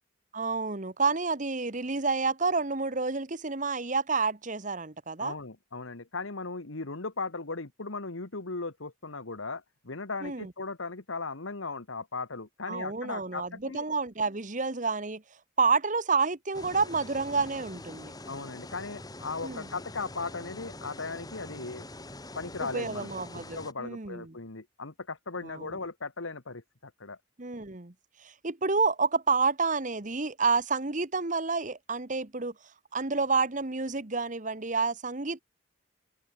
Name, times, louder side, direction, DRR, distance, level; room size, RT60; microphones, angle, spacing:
voice 1, 0.3-5.3 10.2-10.5 12.7-15.2 15.6-18.1 19.4-19.7 22.6-24.3 25.4-25.7 27.4-27.9 28.2-32.5 32.9-35.4, right 4 dB, 40° right, 1.4 m, -29 dB
voice 2, 5.2-13.9 18.3-21.9 22.4-23.1 23.5-27.2, left 3 dB, 90° left, 1.8 m, -37 dB
sound 1, 16.5-23.7, left 2 dB, 20° left, 2.5 m, -44 dB
head